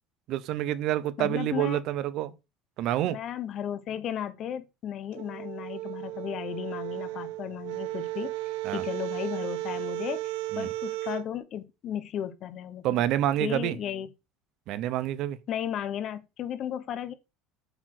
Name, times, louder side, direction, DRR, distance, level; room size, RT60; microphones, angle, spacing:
voice 1, 0.3-2.3 2.8-3.2 8.6-8.8 10.5-10.7 12.8-13.8 14.7-15.4, right 12 dB, 45° right, 0.7 m, -28 dB
voice 2, 1.2-1.8 3.0-8.3 8.7-13.0 13.4-14.1 15.5-17.1, left 10 dB, 35° left, 1.0 m, -35 dB
sound 1, 5.1-11.3, right 18 dB, 75° right, 0.4 m, -34 dB
8.0 x 4.2 x 6.3 m
cardioid pair, 175°, 0 cm